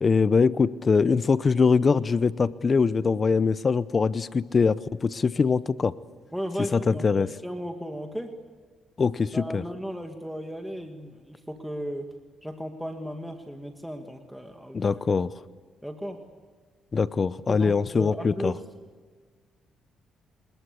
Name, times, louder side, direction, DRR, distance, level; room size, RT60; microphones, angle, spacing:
voice 1, 0.0-5.9 6.7-7.3 9.0-9.6 14.7-15.3 16.9-18.5, left 5 dB, 35° left, 16 dB, 0.7 m, -23 dB
voice 2, 6.3-8.3 9.3-12.1 12.4-15.0 15.8-16.2 17.5-18.6, equal, ahead, 4 dB, 2.1 m, -35 dB
27.0 x 21.0 x 8.5 m, 1.5 s
cardioid pair, 90°, 0 cm